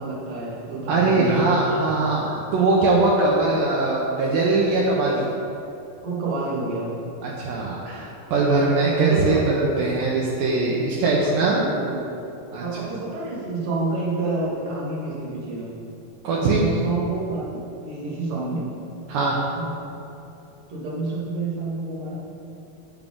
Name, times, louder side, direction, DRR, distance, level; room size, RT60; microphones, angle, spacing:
voice 1, 0.0-1.8 6.0-7.0 8.8-9.4 11.4-12.0 12.6-15.8 16.5-18.7 19.5-19.7 20.7-22.2, right 3 dB, 50° right, -5 dB, 1.9 m, -28 dB
voice 2, 0.9-5.3 7.2-11.6 12.5-12.6 16.2-16.6 19.1-19.4, right 3 dB, 75° right, -3 dB, 2.3 m, -21 dB
9.1 x 7.0 x 3.6 m, 2.9 s
omnidirectional pair, 4.4 m